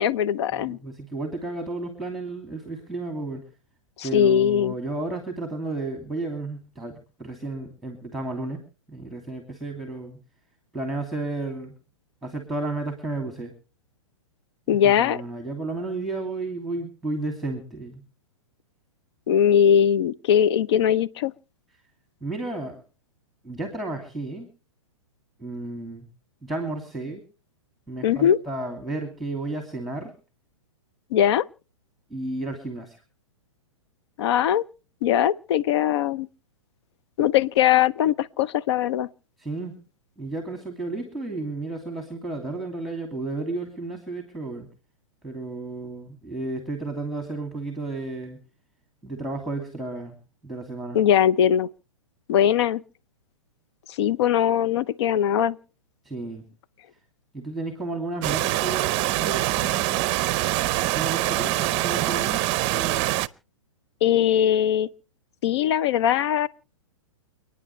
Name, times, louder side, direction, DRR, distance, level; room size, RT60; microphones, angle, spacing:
voice 1, 0.0-0.8 4.0-4.7 14.7-15.2 19.3-21.3 28.0-28.4 31.1-31.4 34.2-34.7 35.0-36.3 37.2-39.1 50.9-51.7 52.3-52.8 54.0-55.6 64.0-64.9 65.4-66.5, left 9 dB, 55° left, 0.8 m, -20 dB
voice 2, 0.5-3.4 4.0-8.6 8.9-10.2 10.7-11.7 12.2-13.5 14.7-18.0 22.2-22.8 23.4-24.5 25.4-26.1 26.4-27.2 27.9-30.1 32.1-33.0 39.4-39.7 40.2-44.7 45.2-48.4 49.0-50.2 50.4-51.0 56.0-56.4 57.3-60.3 60.9-62.5 62.7-63.2, right 2 dB, ahead, 2.7 m, -32 dB
sound 1, 58.2-63.3, right 17 dB, 35° right, 0.7 m, -24 dB
29.5 x 9.9 x 3.3 m
hypercardioid pair, 135°, 17 cm